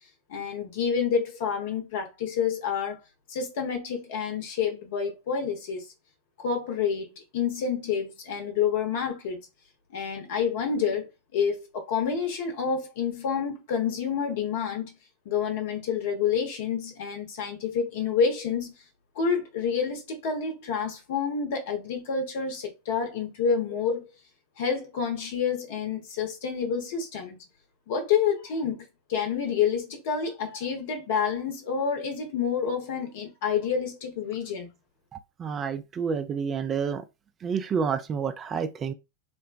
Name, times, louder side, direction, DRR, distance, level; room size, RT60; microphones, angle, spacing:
voice 1, 0.3-3.0 3.3-5.9 6.4-7.1 7.3-9.4 9.9-14.9 15.3-18.7 19.2-24.1 24.6-27.4 27.9-34.7, left 6 dB, 50° left, 0.8 m, -28 dB
voice 2, 35.4-37.0 37.4-38.9, right 6 dB, 25° right, 0.4 m, -29 dB
3.8 x 2.2 x 2.4 m
figure-of-eight pair, 90°, 0 cm